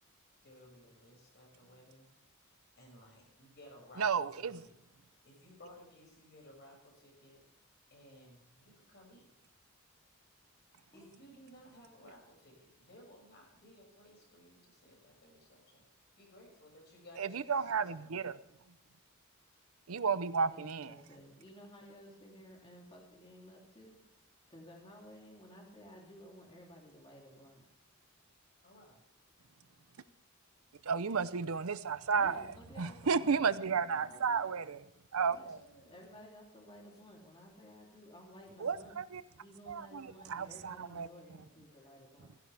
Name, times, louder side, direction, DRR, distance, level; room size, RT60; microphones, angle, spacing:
voice 1, 0.4-2.1 2.4-2.5 2.8-4.7 5.2-7.4 7.9-9.3 10.9-15.9 16.2-18.4 28.6-29.0 33.3-33.4 35.3-36.0 41.1-42.1, left 1 dB, 50° left, 0 dB, 6.5 m, -58 dB
voice 2, 4.0-4.6 17.2-18.3 19.9-20.9 30.8-32.5 32.8-34.8 35.1-35.6 38.6-39.2 39.7-41.1, right 5 dB, 90° right, 14 dB, 0.7 m, -33 dB
voice 3, 20.5-27.6 32.1-34.6 35.2-35.5 35.9-42.4, equal, 25° left, -1 dB, 3.1 m, -55 dB
16.0 x 15.5 x 3.4 m, 0.78 s
head